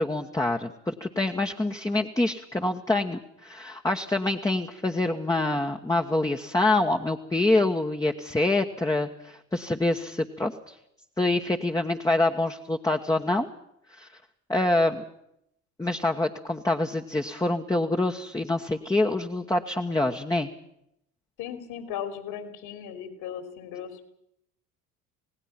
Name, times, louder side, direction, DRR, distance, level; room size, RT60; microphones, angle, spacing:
voice 1, 0.0-10.7 11.2-13.5 13.9-14.1 14.5-15.0 15.8-20.5, left 2 dB, 10° left, 2 dB, 1.3 m, -26 dB
voice 2, 21.4-24.1, left 9 dB, 55° left, 9 dB, 3.6 m, -37 dB
27.0 x 18.5 x 5.9 m, 0.77 s
hypercardioid pair, 70°, 43 cm